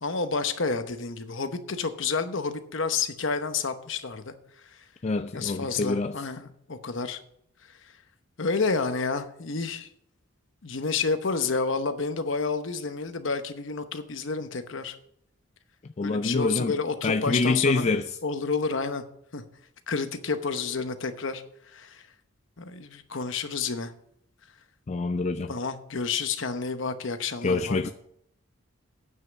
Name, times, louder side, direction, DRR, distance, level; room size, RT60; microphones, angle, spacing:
voice 1, 0.0-4.3 5.3-7.2 8.4-9.9 10.6-14.9 16.0-17.9 18.2-19.0 19.3-19.4 19.9-21.4 21.7-22.0 22.6-23.9 25.5-27.8, left 4 dB, 65° left, 0.9 m, -30 dB
voice 2, 5.0-6.1 16.0-16.8 17.0-18.1 24.9-25.5 27.4-27.9, left 3 dB, 35° left, 0.4 m, -26 dB
9.5 x 5.7 x 6.9 m
head